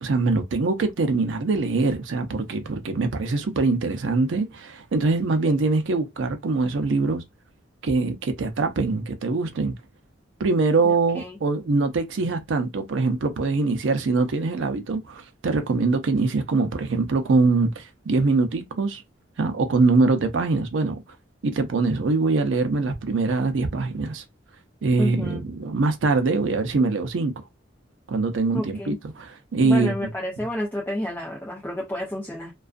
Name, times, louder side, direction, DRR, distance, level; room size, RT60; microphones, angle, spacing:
voice 1, 0.0-7.2 7.8-9.7 10.4-19.0 19.4-21.0 21.4-24.2 24.8-27.3 28.1-29.9, right 3 dB, 85° right, 0.5 m, -23 dB
voice 2, 10.8-11.4 25.0-25.4 28.5-29.0 29.6-32.5, left 1 dB, 10° left, 0.5 m, -30 dB
2.5 x 2.3 x 2.3 m
head